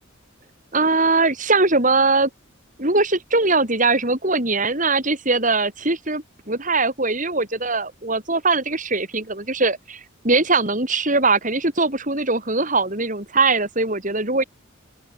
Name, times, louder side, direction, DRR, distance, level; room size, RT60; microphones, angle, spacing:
voice 1, 0.7-2.3 2.8-14.4, right 3 dB, 40° right, 5.5 m, -21 dB
open air
head